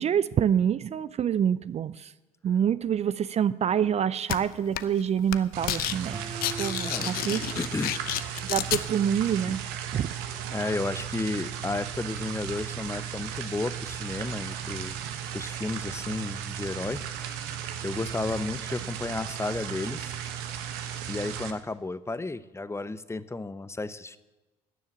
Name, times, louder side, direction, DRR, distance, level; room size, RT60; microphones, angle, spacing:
voice 1, 0.0-2.1 2.4-6.2 6.6-7.4 8.5-9.6 9.9-10.1, right 8 dB, 40° right, 17 dB, 0.5 m, -26 dB
sound 1, 4.3-4.4 4.8-5.0 5.3-6.0 6.2-8.8, left 14 dB, 60° left, 0.7 m, -30 dB
sound 2, 5.5-21.5, right 9 dB, 75° right, 1.2 m, -36 dB
sound 3, 6.1-8.9, right 4 dB, 20° right, 1.4 m, -43 dB
voice 2, 7.6-8.0 9.5-9.6 10.5-15.0 15.3-17.0 17.8-20.1 21.1-24.2, left 3 dB, 15° left, 15 dB, 0.8 m, -33 dB
12.5 x 7.2 x 9.0 m, 1.1 s
hypercardioid pair, 60°, 17 cm